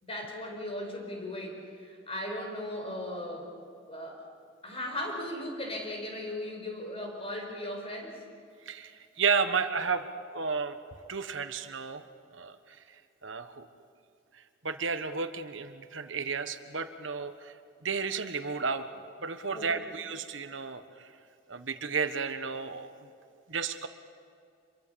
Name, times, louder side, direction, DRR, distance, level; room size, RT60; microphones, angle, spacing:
voice 1, 0.0-3.5 3.9-4.2 4.6-8.2 19.5-19.8, left 1 dB, 30° left, 2 dB, 5.0 m, -37 dB
voice 2, 8.7-10.1 10.3-10.8 11.1-12.0 12.3-12.8 13.2-13.7 14.6-17.5 17.8-18.8 19.2-21.1 21.5-22.9 23.5-23.9, right 5 dB, 65° right, 9 dB, 1.3 m, -32 dB
26.0 x 23.5 x 7.0 m, 2.3 s
head